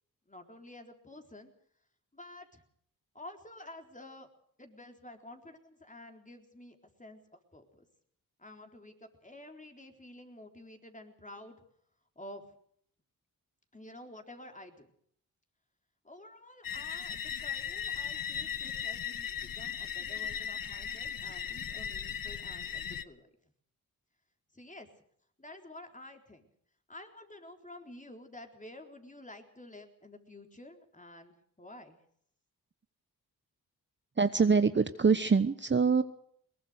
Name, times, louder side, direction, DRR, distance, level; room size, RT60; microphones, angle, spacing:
voice 1, 0.3-1.5 2.1-2.6 3.1-4.3 4.6-7.9 8.4-11.6 12.2-12.5 13.7-14.9 16.0-23.3 24.5-24.9 25.4-26.5 26.9-32.0, left 1 dB, 20° left, 4 dB, 4.0 m, -50 dB
sound 1, 16.6-23.0, left 8 dB, 60° left, 1.0 m, -37 dB
voice 2, 34.2-36.0, right 5 dB, 30° right, 11 dB, 1.0 m, -24 dB
22.0 x 19.0 x 6.5 m, 0.65 s
cardioid pair, 50°, 39 cm